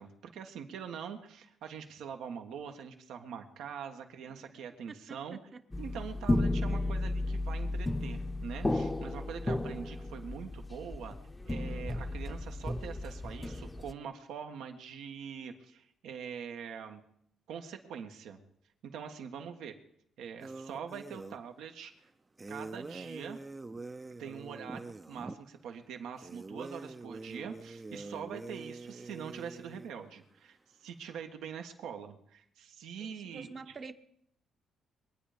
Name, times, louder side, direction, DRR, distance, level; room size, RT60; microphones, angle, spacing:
voice 1, 0.0-5.4 5.8-11.1 11.4-17.0 17.5-18.4 18.8-19.7 20.2-21.9 22.5-23.4 24.2-33.8, right 7 dB, 80° right, 1.5 m, -44 dB
voice 2, 4.9-5.2 5.5-5.6 6.7-7.0 29.0-29.1 33.0-33.9, right 4 dB, 40° right, 1.0 m, -48 dB
sound 1, 5.7-13.9, left 2 dB, 15° left, 0.8 m, -34 dB
sound 2, 20.4-21.4 22.4-25.4 26.2-29.9, right 3 dB, 25° right, 0.6 m, -45 dB
23.5 x 9.3 x 5.1 m
cardioid pair, 90°, 0 cm